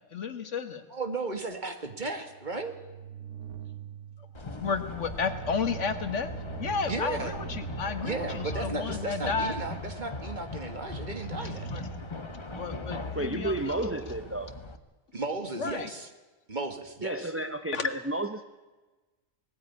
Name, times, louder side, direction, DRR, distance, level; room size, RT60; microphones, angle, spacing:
voice 1, 0.1-0.8 4.4-6.3 6.6-9.6 11.7-11.8 12.5-13.9 15.6-15.9 17.7-17.9, left 5 dB, 70° left, 10 dB, 1.8 m, -32 dB
voice 2, 0.9-2.8 6.9-7.4 8.0-11.7 15.1-16.1 16.5-17.3, right 3 dB, 40° right, 6 dB, 2.1 m, -35 dB
sound 1, 2.2-12.8, right 9 dB, 70° right, 1.6 m, -43 dB
sound 2, 4.3-14.8, left 3 dB, 25° left, 1.2 m, -39 dB
voice 3, 13.1-14.5 17.0-18.4, right 2 dB, 10° right, 8 dB, 0.8 m, -32 dB
19.5 x 15.0 x 9.7 m, 1.2 s
omnidirectional pair, 1.3 m